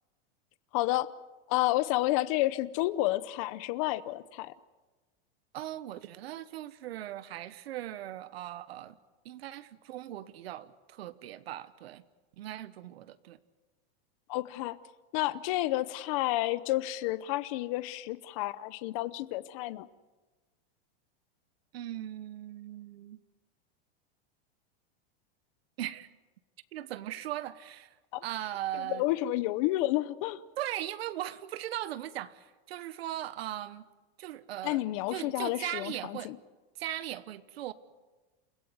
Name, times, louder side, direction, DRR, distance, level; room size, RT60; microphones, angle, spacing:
voice 1, 0.7-1.1 1.5-4.5 14.3-14.8 15.1-19.9 28.1-28.2 28.7-30.4 34.6-36.4, left 16 dB, 35° left, 16 dB, 0.8 m, -30 dB
voice 2, 5.5-9.0 9.2-12.0 12.4-13.4 21.7-23.2 25.8-26.1 26.7-28.0 28.2-29.0 30.6-33.8 34.2-36.3 36.7-37.7, right 13 dB, 85° right, 14 dB, 1.2 m, -39 dB
29.5 x 15.0 x 9.6 m, 1.2 s
supercardioid pair, 180°, 30 cm